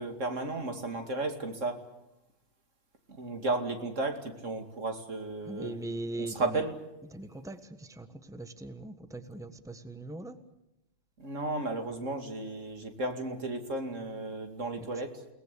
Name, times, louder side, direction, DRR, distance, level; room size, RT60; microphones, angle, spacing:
voice 1, 0.0-1.8 3.2-5.8 6.2-6.8 11.2-15.2, right 2 dB, 85° right, 5 dB, 2.8 m, -34 dB
voice 2, 5.5-6.6 7.1-10.4 14.8-14.9, right 2 dB, 5° right, 9 dB, 1.3 m, -40 dB
29.5 x 19.0 x 8.4 m, 0.91 s
omnidirectional pair, 1.3 m